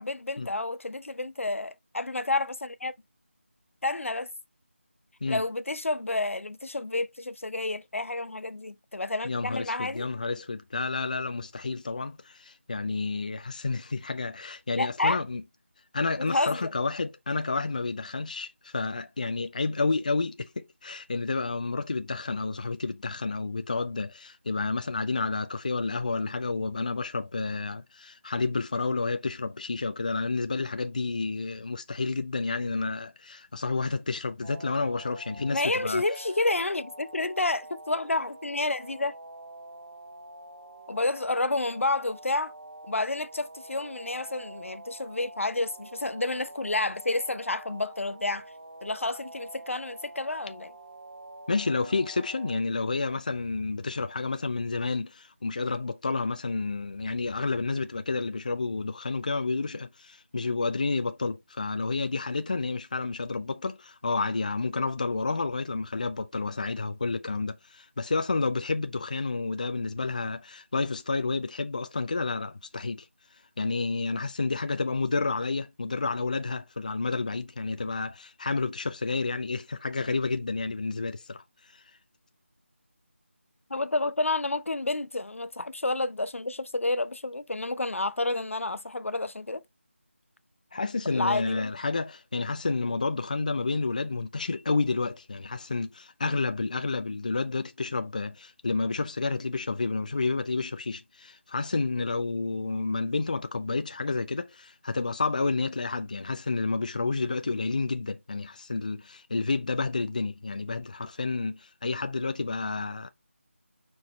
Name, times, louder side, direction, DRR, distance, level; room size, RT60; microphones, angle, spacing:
voice 1, 0.0-2.9 3.8-4.3 5.3-10.0 14.7-15.2 16.3-16.7 35.5-39.1 40.9-42.5 42.8-48.4 48.8-50.7 83.7-89.6 91.1-91.7, left 2 dB, 80° left, 0.8 m, -30 dB
voice 2, 9.2-15.4 15.9-36.1 51.5-73.1 73.6-81.8 90.7-113.1, left 3 dB, 35° left, 0.4 m, -30 dB
sound 1, 34.4-52.6, right 1 dB, 70° right, 1.2 m, -46 dB
6.4 x 4.6 x 3.2 m
figure-of-eight pair, 170°, 7 cm